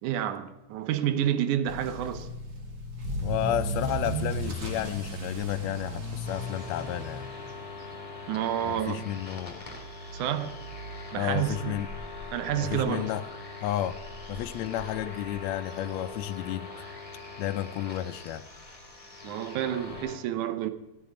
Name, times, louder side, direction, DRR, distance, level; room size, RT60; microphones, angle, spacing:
voice 1, 0.0-2.3 8.3-9.1 10.1-10.6 11.1-11.8 12.3-13.1 19.2-20.7, right 10 dB, 90° right, 2.3 m, -29 dB
Motor vehicle (road) / Accelerating revving vroom, 1.7-16.5 16.8-17.2 17.7-17.8 18.1-18.2 18.5-18.6 19.9-20.0, equal, 35° right, 1.9 m, -37 dB
voice 2, 3.2-7.3 8.6-9.6 11.2-11.9 12.5-13.2 13.6-14.0 14.3-16.7 17.4-18.4, left 12 dB, 80° left, 1.7 m, -32 dB
sound 1, 6.2-20.2, left 4 dB, 15° left, 1.7 m, -43 dB
15.5 x 9.1 x 5.0 m
omnidirectional pair, 3.4 m